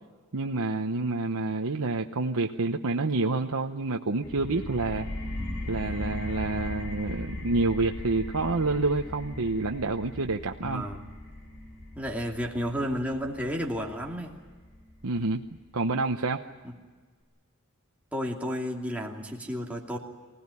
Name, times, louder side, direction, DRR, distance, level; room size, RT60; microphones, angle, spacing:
voice 1, 0.3-5.1 5.7-10.8 15.0-15.4 15.7-16.4, right 3 dB, 80° right, 2 dB, 1.0 m, -28 dB
sound 1, 4.2-15.6, left 1 dB, 75° left, 6.0 m, -39 dB
voice 2, 10.6-11.0 12.0-14.4 18.1-20.0, equal, 5° right, -1 dB, 2.7 m, -32 dB
25.0 x 17.5 x 9.8 m, 1.5 s
head